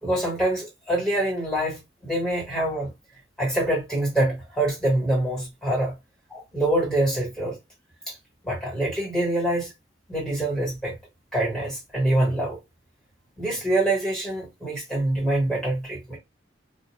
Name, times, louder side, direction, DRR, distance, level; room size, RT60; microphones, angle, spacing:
voice 1, 0.0-2.9 3.4-5.9 6.3-7.6 8.1-8.2 8.4-9.7 10.1-10.9 11.3-12.6 13.4-16.2, right 1 dB, 5° left, 1.4 m, -25 dB
2.5 x 2.1 x 3.1 m
head